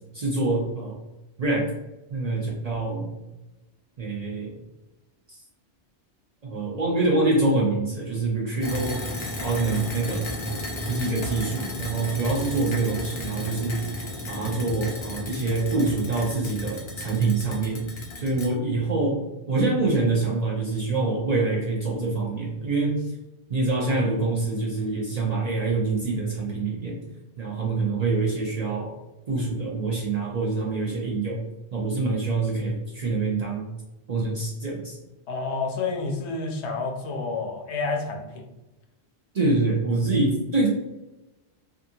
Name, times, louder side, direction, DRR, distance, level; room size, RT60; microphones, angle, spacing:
voice 1, 0.1-1.0 1.4-1.7 2.1-3.1 4.0-4.6 6.4-9.1 9.4-10.3 10.8-13.8 14.3-17.8 18.2-23.0 23.5-27.0 27.4-28.9 29.3-31.4 31.7-33.7 34.1-35.0 39.3-40.7, right 3 dB, 50° right, -3 dB, 0.5 m, -25 dB
sound 1, 8.6-18.5, left 1 dB, 45° left, 0.4 m, -33 dB
voice 2, 35.3-38.4, left 3 dB, 75° left, 2 dB, 0.9 m, -29 dB
2.7 x 2.4 x 2.6 m, 0.99 s
omnidirectional pair, 1.2 m